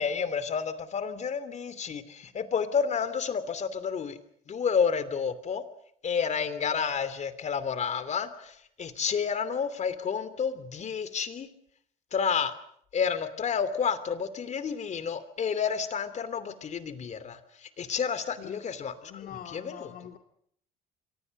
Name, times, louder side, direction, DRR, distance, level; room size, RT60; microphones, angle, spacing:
voice 1, 0.0-4.2 4.5-5.6 6.0-11.5 12.1-12.5 12.9-19.9, left 6 dB, 45° left, 14 dB, 2.9 m, -30 dB
voice 2, 19.0-20.2, left 10 dB, 60° left, 5 dB, 2.1 m, -44 dB
29.0 x 24.0 x 6.6 m, 0.67 s
cardioid pair, 110°, 17 cm